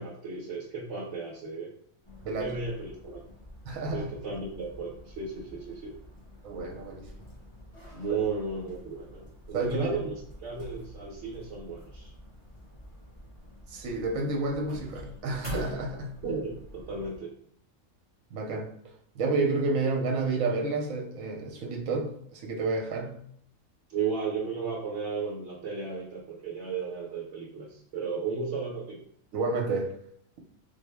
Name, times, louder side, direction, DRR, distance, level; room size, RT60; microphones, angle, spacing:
voice 1, 0.0-1.7 2.4-3.2 3.9-6.0 7.9-12.1 16.2-17.3 23.9-29.0, right 4 dB, 65° right, -3 dB, 1.0 m, -34 dB
sound 1, 2.0-17.2, left 1 dB, 25° left, 0.9 m, -47 dB
voice 2, 2.2-2.5 3.7-4.1 6.4-7.1 8.1-8.2 9.5-10.0 13.7-16.2 18.3-18.7 19.1-23.2 29.3-29.9, right 3 dB, 80° right, 1 dB, 1.1 m, -30 dB
3.7 x 2.0 x 3.3 m, 0.66 s
omnidirectional pair, 1.4 m